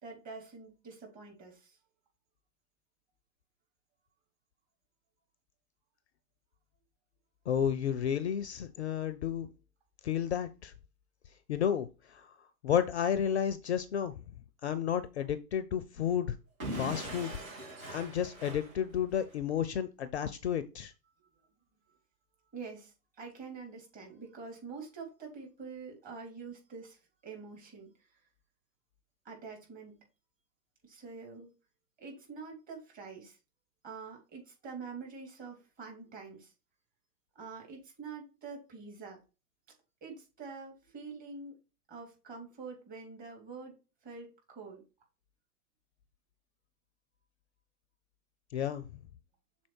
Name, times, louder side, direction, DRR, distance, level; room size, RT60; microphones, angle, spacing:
voice 1, 0.0-1.8 21.2-21.3 22.5-28.2 29.2-30.1 30.8-31.5 32.0-33.4 33.8-36.5 37.3-39.2 40.0-41.6 41.9-44.8, right 4 dB, 20° right, 0 dB, 2.5 m, -46 dB
voice 2, 7.5-9.5 10.0-10.7 11.5-12.3 12.6-14.1 14.6-16.3 16.8-17.3 17.9-20.9 48.5-48.9, left 9 dB, 45° left, 13 dB, 0.6 m, -31 dB
Explosion / Shatter, 16.6-19.4, right 1 dB, 60° right, 3.6 m, -41 dB
6.2 x 4.2 x 4.5 m, 0.31 s
figure-of-eight pair, 115°, 46 cm